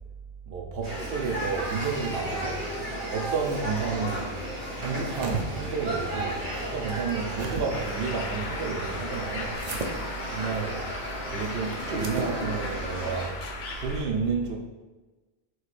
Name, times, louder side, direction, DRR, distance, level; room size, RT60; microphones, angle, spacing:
voice 1, 0.5-2.7 3.1-4.3 4.8-9.6 10.3-10.8 11.3-13.4 13.8-14.6, right 5 dB, 75° right, 1 dB, 0.9 m, -31 dB
sound 1, 0.8-13.3, equal, 30° right, 1.4 m, -34 dB
sound 2, 4.9-5.4 6.9-7.6 9.5-9.9 11.9-12.3, right 4 dB, 50° right, 0.6 m, -34 dB
Bird, 7.7-14.0, left 3 dB, 85° left, 0.9 m, -38 dB
6.2 x 3.2 x 2.5 m, 1.2 s
omnidirectional pair, 1.0 m